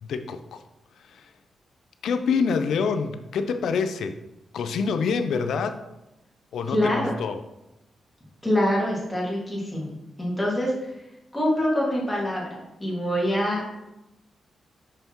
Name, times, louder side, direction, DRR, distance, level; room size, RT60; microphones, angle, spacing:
voice 1, 0.0-0.6 0.9-1.3 2.0-4.2 4.5-5.8 6.5-7.4, left 5 dB, 85° left, 9 dB, 0.5 m, -26 dB
voice 2, 6.7-7.1 8.4-9.9 10.2-10.9 11.3-13.6, left 1 dB, 10° left, -5 dB, 2.1 m, -25 dB
5.9 x 5.4 x 3.0 m, 0.91 s
cardioid pair, 110°, 0 cm